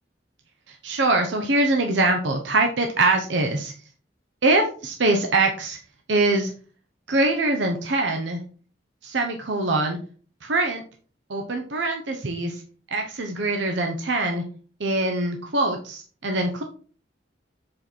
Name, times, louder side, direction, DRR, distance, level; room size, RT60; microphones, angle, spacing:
voice 1, 0.7-3.7 4.4-5.8 6.1-6.5 7.1-8.4 9.0-10.0 10.4-10.8 11.3-12.6 12.9-14.4 14.8-16.6, right 2 dB, 70° right, 3 dB, 0.9 m, -23 dB
7.7 x 4.5 x 4.2 m, 0.41 s
head